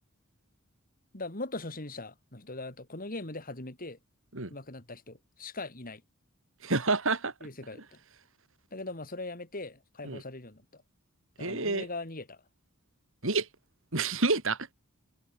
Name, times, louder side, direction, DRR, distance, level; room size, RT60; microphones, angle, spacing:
voice 1, 1.1-4.0 4.5-6.0 7.4-7.8 8.7-10.8 11.4-12.4, left 2 dB, 40° left, 3.5 m, -40 dB
voice 2, 6.6-7.3 10.0-10.2 11.4-11.9 13.2-13.5 13.9-14.7, right 3 dB, 65° right, 3.2 m, -28 dB
head